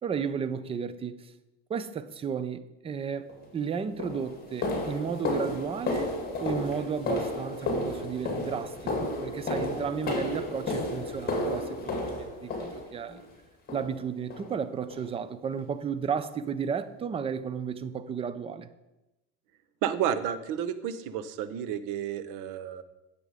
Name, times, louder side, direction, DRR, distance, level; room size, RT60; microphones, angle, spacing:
voice 1, 0.0-1.3 1.7-3.3 3.5-6.1 6.4-13.2 13.7-18.7, right 6 dB, 15° right, 0.4 m, -33 dB
sound 1, 3.3-3.4 4.0-13.2 13.7-14.0 14.3-14.5 14.9-15.1 15.5-15.6 16.1-16.2, left 2 dB, 25° left, 2.3 m, -32 dB
voice 2, 19.8-22.8, right 9 dB, 55° right, 0.9 m, -31 dB
9.0 x 6.9 x 4.9 m
supercardioid pair, 115°, 38 cm